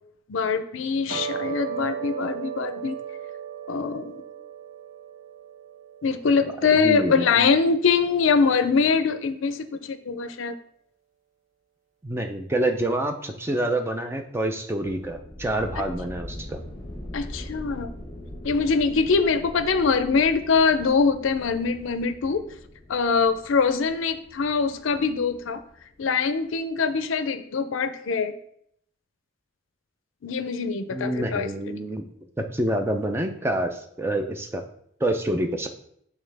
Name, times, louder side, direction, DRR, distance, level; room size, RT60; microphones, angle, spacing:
voice 1, 0.3-3.0 3.7-4.2 6.0-10.5 17.1-17.9 18.4-22.4 22.9-25.6 26.0-28.3 30.2-31.8, left 5 dB, 70° left, 10 dB, 0.5 m, -23 dB
sound 1, 1.1-7.6, right 8 dB, 70° right, 1.9 m, -36 dB
voice 2, 6.8-7.3 12.0-16.6 30.9-32.0 32.4-34.6 35.0-35.7, right 1 dB, 10° right, 4 dB, 0.4 m, -27 dB
sound 2, 14.8-26.3, left 1 dB, 20° left, 1.0 m, -41 dB
8.5 x 3.5 x 3.3 m, 0.70 s
head